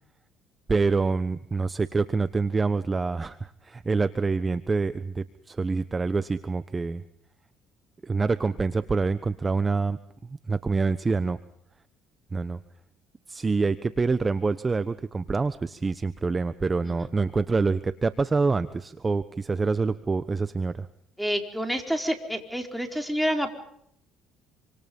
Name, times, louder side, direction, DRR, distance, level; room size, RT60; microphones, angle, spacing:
voice 1, 0.7-7.0 8.0-10.0 10.5-11.4 12.3-12.6 13.3-20.9, right 4 dB, 25° right, 13 dB, 1.1 m, -26 dB
voice 2, 21.2-23.5, equal, ahead, 4 dB, 4.7 m, -28 dB
27.0 x 26.0 x 5.5 m, 0.71 s
supercardioid pair, 80°, 0 cm